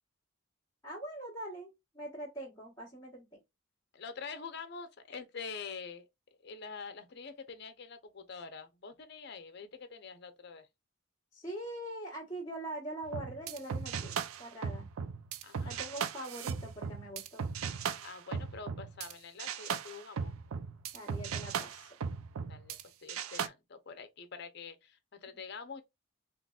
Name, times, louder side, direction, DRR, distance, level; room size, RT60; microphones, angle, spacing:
voice 1, 0.8-3.4 11.3-14.9 15.6-17.5 20.9-22.0, right 1 dB, 15° left, 1.3 m, -43 dB
voice 2, 3.9-6.0 6.4-10.7 15.4-15.8 18.0-20.3 22.5-25.8, left 5 dB, 50° left, 0.7 m, -46 dB
sound 1, 13.1-19.1 19.4-22.8 23.1-23.5, right 6 dB, 85° right, 0.4 m, -37 dB
3.8 x 3.0 x 2.4 m
head